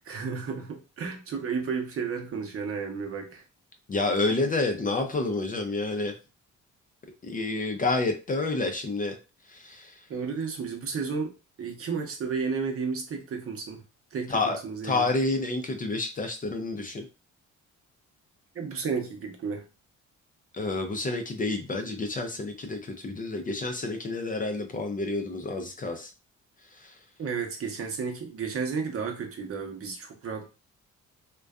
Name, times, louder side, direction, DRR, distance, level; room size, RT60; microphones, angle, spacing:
voice 1, 0.1-3.4 10.1-11.3 11.6-13.8 14.1-15.1 18.5-19.6 27.2-30.5, right 5 dB, 50° right, 0.7 m, -32 dB
voice 2, 3.9-6.2 7.2-9.2 9.5-10.0 14.3-14.6 14.8-17.0 20.5-26.1 26.8-27.0, left 2 dB, 30° left, 0.4 m, -29 dB
2.5 x 2.2 x 2.3 m
cardioid pair, 90°, 30 cm